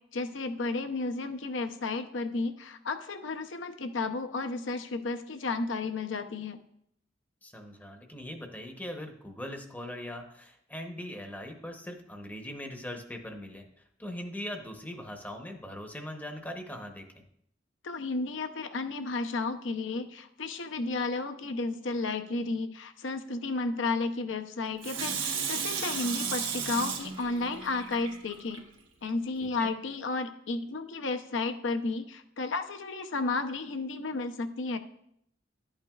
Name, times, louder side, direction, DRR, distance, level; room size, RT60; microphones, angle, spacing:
voice 1, 0.1-6.6 17.8-28.6 29.0-34.8, left 3 dB, 75° left, 8 dB, 0.7 m, -33 dB
voice 2, 7.4-13.6 14.0-17.2 29.6-29.7, left 1 dB, 10° left, 4 dB, 0.8 m, -40 dB
Water tap faucet / Sink (filling or washing), 24.8-28.6 29.1-29.2, right 6 dB, 90° right, 1.5 m, -34 dB
11.5 x 8.8 x 2.3 m, 0.72 s
head